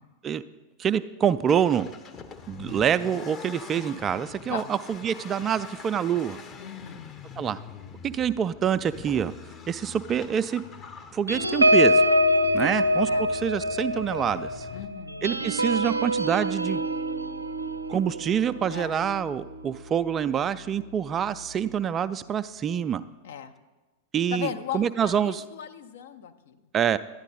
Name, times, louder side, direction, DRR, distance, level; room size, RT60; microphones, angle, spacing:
voice 1, 0.8-1.9 2.5-6.4 7.4-7.6 8.0-9.3 9.7-10.6 11.1-12.0 12.5-13.1 13.4-14.7 15.2-16.8 17.9-23.0 24.1-24.5 24.7-25.4 26.7-27.0, right 8 dB, 25° right, 14 dB, 0.3 m, -26 dB
Accelerating revving vroom, 1.3-14.8, left 6 dB, 25° left, 0.8 m, -45 dB
voice 2, 6.6-7.0 12.6-13.3 14.7-15.2 18.7-19.0 23.2-23.5 24.3-26.6, left 9 dB, 60° left, 8 dB, 0.6 m, -37 dB
sound 1, 11.3-20.2 20.6-20.8 21.1-21.4, equal, 85° right, 0.5 m, -25 dB
11.5 x 9.7 x 4.1 m, 1.1 s
figure-of-eight pair, 90°, 0 cm